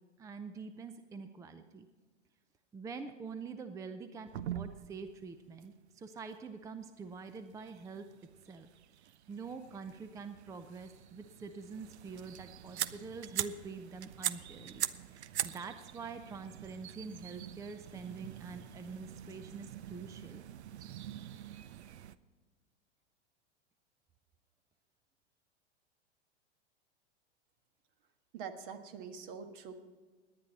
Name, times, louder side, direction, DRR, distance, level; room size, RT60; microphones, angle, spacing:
voice 1, 0.2-1.9 2.7-8.1 8.4-8.7 9.3-20.4, right 4 dB, 10° right, 10 dB, 0.5 m, -46 dB
sound 1, 4.3-5.1 5.6-5.7 6.1-6.2 7.0-22.2, right 11 dB, 70° right, 0.7 m, -43 dB
voice 2, 28.3-29.7, right 6 dB, 50° right, 7 dB, 1.6 m, -44 dB
18.0 x 10.0 x 4.1 m, 1.5 s
hypercardioid pair, 100°, 35 cm